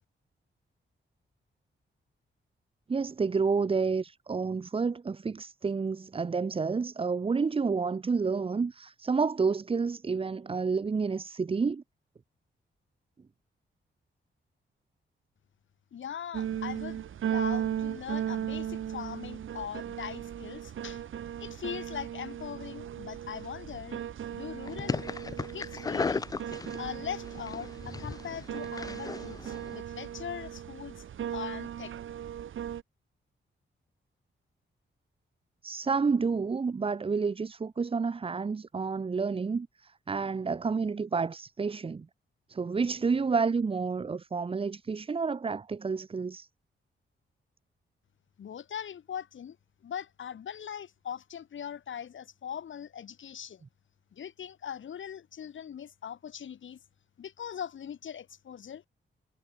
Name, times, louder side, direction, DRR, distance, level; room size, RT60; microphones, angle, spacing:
voice 1, 2.9-11.8 35.6-42.1 42.5-46.5, right 5 dB, 25° right, 0.8 m, -29 dB
voice 2, 15.9-21.0 21.4-24.0 24.3-25.1 25.4-31.0 31.3-31.9 48.4-49.6 49.8-53.6 54.1-56.8 57.2-58.8, left 8 dB, 70° left, 3.5 m, -41 dB
sound 1, 16.3-32.8, right 10 dB, 80° right, 1.3 m, -37 dB
sound 2, 24.7-29.8, left 4 dB, 20° left, 0.3 m, -36 dB
wide cardioid pair, 150°, 20 cm